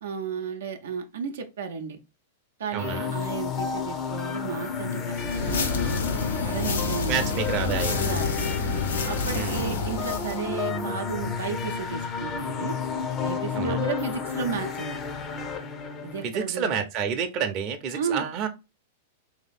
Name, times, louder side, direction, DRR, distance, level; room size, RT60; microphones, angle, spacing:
voice 1, 0.0-2.0 2.6-6.0 6.4-7.3 8.0-8.5 9.0-12.8 13.2-15.0 16.0-16.8 17.9-18.2, right 6 dB, 80° right, 0.6 m, -33 dB
voice 2, 2.7-3.1 7.1-8.1 9.3-9.7 13.5-13.8 16.2-18.5, right 7 dB, 40° right, 0.7 m, -29 dB
sound 1, 2.8-16.3, left 5 dB, 30° left, 0.6 m, -31 dB
sound 2, 5.1-10.4, left 4 dB, 80° left, 0.7 m, -29 dB
3.2 x 2.8 x 4.1 m
hypercardioid pair, 110°, 0 cm